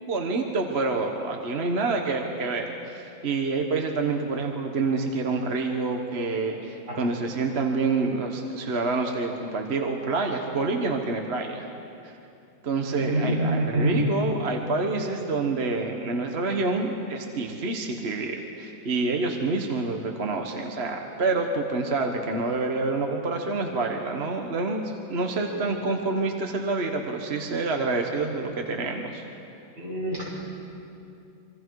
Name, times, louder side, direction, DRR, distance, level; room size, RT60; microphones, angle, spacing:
voice 1, 0.1-11.7 12.0-12.1 12.6-24.8 25.1-29.2, right 3 dB, 40° right, 3 dB, 1.3 m, -27 dB
voice 2, 12.9-13.9 25.4-25.7 29.8-30.4, right 1 dB, 60° right, -5 dB, 6.6 m, -27 dB
26.5 x 24.5 x 4.7 m, 2.7 s
omnidirectional pair, 2.1 m